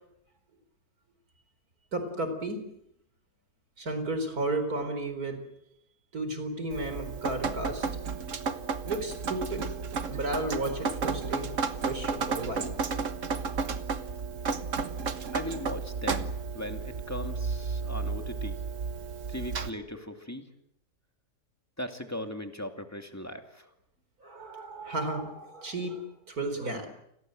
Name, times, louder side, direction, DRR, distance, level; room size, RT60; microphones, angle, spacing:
voice 1, 1.9-2.6 3.8-5.4 6.1-7.9 8.8-9.7 10.1-11.5 11.8-12.9 24.2-26.9, right 2 dB, 90° right, 8 dB, 4.7 m, -33 dB
Drip, 6.7-19.7, right 5 dB, 60° right, 1.6 m, -33 dB
voice 2, 15.3-18.6 19.3-20.5 21.8-23.7, left 1 dB, 10° left, 5 dB, 2.4 m, -38 dB
29.5 x 21.5 x 7.7 m, 0.80 s
omnidirectional pair, 1.5 m